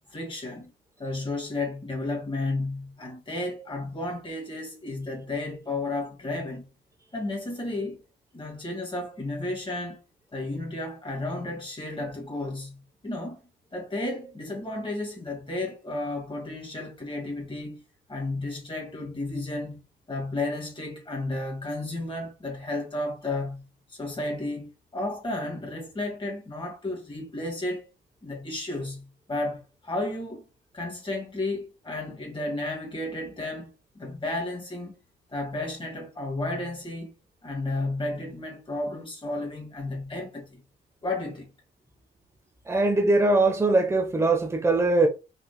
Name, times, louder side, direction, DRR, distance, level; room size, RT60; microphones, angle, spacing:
voice 1, 0.1-0.7 1.0-6.7 7.1-8.0 8.3-10.0 10.3-13.4 13.7-17.8 18.1-19.8 20.1-27.9 28.2-30.5 30.7-35.0 35.3-37.1 37.4-40.6 41.0-41.5, left 2 dB, 25° left, 1.9 m, -33 dB
voice 2, 42.7-45.1, right 2 dB, 15° right, 1.0 m, -21 dB
5.9 x 3.7 x 2.2 m
cardioid pair, 90°, 20 cm